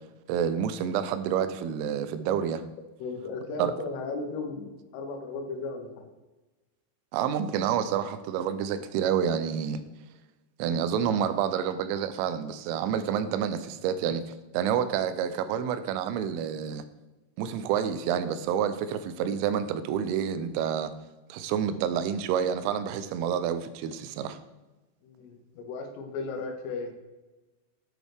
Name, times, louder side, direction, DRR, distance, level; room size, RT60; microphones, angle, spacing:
voice 1, 0.3-2.6 3.6-3.7 7.1-9.8 10.6-16.8 17.4-20.9 21.3-24.4, right 8 dB, 85° right, 11 dB, 3.1 m, -28 dB
voice 2, 3.0-6.1 25.0-26.9, left 3 dB, 85° left, 4 dB, 3.7 m, -36 dB
9.0 x 6.2 x 3.4 m, 1.1 s
omnidirectional pair, 5.7 m